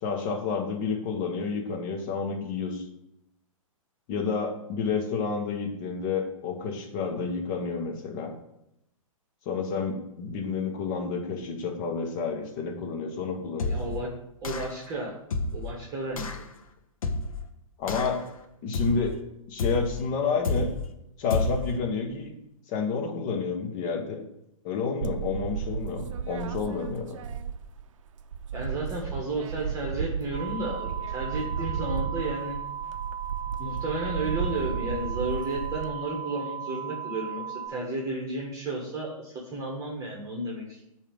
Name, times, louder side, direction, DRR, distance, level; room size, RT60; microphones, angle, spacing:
voice 1, 0.0-2.8 4.1-8.3 9.4-13.8 17.8-18.2 18.6-19.2 19.5-20.7 21.2-22.3 22.7-24.2 24.6-27.2, left 5 dB, 40° left, 3 dB, 1.2 m, -30 dB
sound 1, 13.6-14.0 14.4-14.8 15.3-15.7 16.2-16.4 17.0-17.4 17.9-18.3 18.7-19.2 19.6-20.0 20.4-20.9 21.3-21.7, left 2 dB, 80° left, 0.8 m, -30 dB
voice 2, 13.7-14.1 14.4-15.1 15.5-16.4 28.5-32.6 33.6-40.8, right 2 dB, 20° right, -2 dB, 1.3 m, -33 dB
sound 2, 25.0-27.9 28.2-35.9, right 7 dB, 65° right, 0.5 m, -34 dB
sound 3, 30.3-37.7, right 8 dB, 15° left, 2.7 m, -37 dB
8.5 x 2.8 x 5.1 m, 0.82 s
hypercardioid pair, 135°, 18 cm